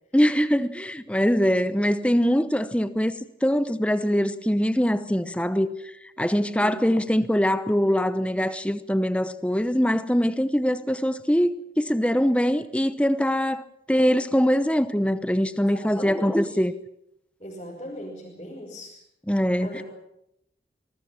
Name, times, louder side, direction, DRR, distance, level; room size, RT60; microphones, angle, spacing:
voice 1, 0.1-5.7 6.2-16.7 19.3-19.8, equal, 5° left, 0.9 m, -23 dB
voice 2, 6.3-6.9 15.6-16.6 17.4-19.0 19.6-19.8, equal, 30° left, 5.9 m, -38 dB
26.0 x 20.0 x 7.4 m
head